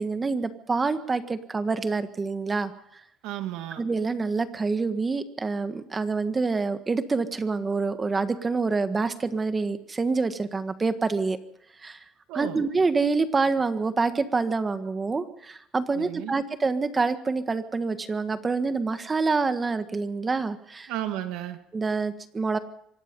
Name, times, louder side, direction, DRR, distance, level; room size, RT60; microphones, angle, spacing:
voice 1, 0.0-2.7 3.8-11.4 11.8-12.0 12.3-20.9 21.7-22.6, right 4 dB, 25° right, 10 dB, 1.6 m, -26 dB
voice 2, 3.2-3.8 12.3-12.6 15.9-16.4 20.9-21.6, right 13 dB, 80° right, 7 dB, 2.0 m, -33 dB
25.0 x 19.0 x 5.5 m, 0.75 s
cardioid pair, 115°, 0 cm